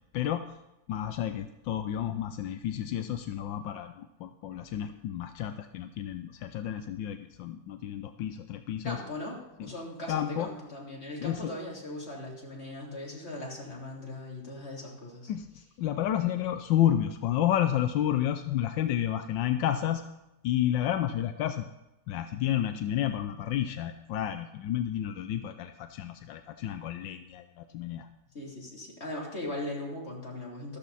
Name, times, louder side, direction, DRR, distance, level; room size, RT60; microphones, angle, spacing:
voice 1, 0.1-0.4 0.9-9.0 9.6-9.7 10.1-10.5 11.2-11.4 15.3-20.0 20.4-21.7 22.1-28.1, left 11 dB, 85° left, 8 dB, 1.3 m, -30 dB
voice 2, 8.8-15.3 28.3-30.8, left 1 dB, 35° left, -3 dB, 3.5 m, -39 dB
13.5 x 13.0 x 4.1 m, 0.96 s
omnidirectional pair, 2.0 m